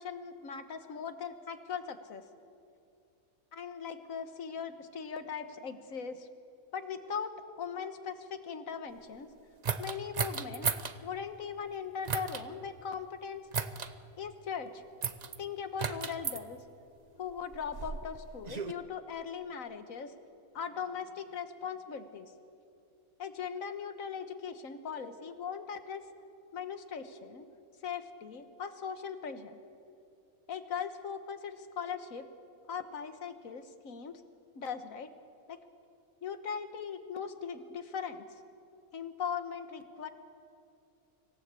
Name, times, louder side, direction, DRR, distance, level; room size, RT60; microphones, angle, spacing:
voice 1, 0.0-2.2 3.5-6.3 6.7-7.3 7.6-9.3 9.8-10.7 11.0-13.4 14.2-14.8 15.4-16.6 17.2-20.1 20.5-22.3 23.2-26.0 26.5-27.5 27.8-29.6 30.5-32.2 32.7-34.2 34.5-35.1 35.5-35.6 36.2-38.2 38.9-40.1, left 6 dB, 70° left, 10 dB, 1.6 m, -39 dB
sound 1, 9.6-11.0 12.0-12.4 13.5-13.9 15.0-15.4 15.8-16.4 17.3-18.7, right 6 dB, 40° right, 0.7 m, -35 dB
26.0 x 16.5 x 8.3 m, 2.6 s
omnidirectional pair, 1.5 m